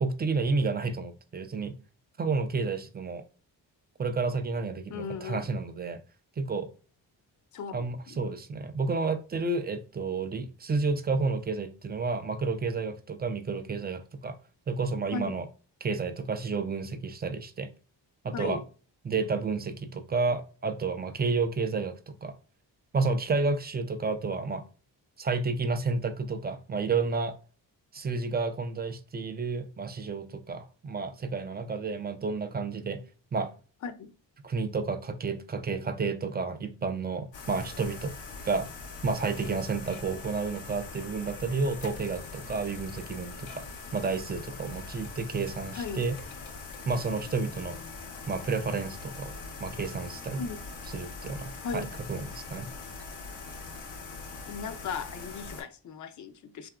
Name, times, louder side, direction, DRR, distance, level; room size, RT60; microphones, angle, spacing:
voice 1, 0.0-1.7 2.2-3.2 4.0-6.0 6.4-6.7 7.7-14.4 14.7-15.5 15.8-17.7 18.2-18.6 19.0-22.3 22.9-24.6 25.2-27.4 27.9-33.0 33.3-33.5 34.4-38.1 38.4-38.7 39.0-43.7 43.9-46.2 46.9-47.8 48.3-50.4 50.9-52.7, right 4 dB, 25° right, 0.3 m, -31 dB
voice 2, 4.9-5.4 7.5-8.4 15.1-15.4 18.3-18.6 33.8-34.1 45.7-46.0 50.4-50.6 51.6-51.9 54.5-56.7, left 5 dB, 40° left, 0.5 m, -37 dB
sound 1, 37.3-55.6, left 4 dB, 85° left, 0.7 m, -42 dB
2.8 x 2.4 x 2.2 m
supercardioid pair, 55°, 45 cm